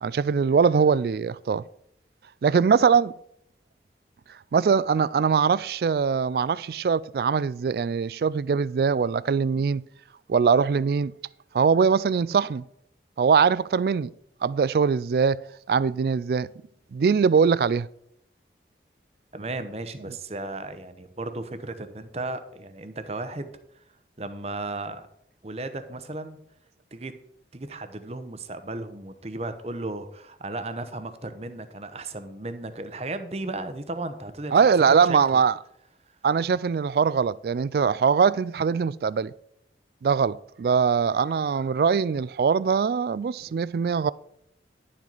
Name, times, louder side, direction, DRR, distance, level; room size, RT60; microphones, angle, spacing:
voice 1, 0.0-1.6 2.4-3.1 4.5-9.9 10.3-11.1 11.5-12.6 13.2-14.1 14.4-16.5 16.9-17.9 34.5-35.6 36.2-39.3 40.0-44.1, right 6 dB, 60° right, 0.3 m, -22 dB
voice 2, 19.3-23.5 24.2-25.1 25.4-26.4 26.9-27.1 27.5-34.6 35.1-35.4 43.4-43.6, right 2 dB, 35° right, 0.8 m, -35 dB
11.0 x 7.4 x 4.0 m
head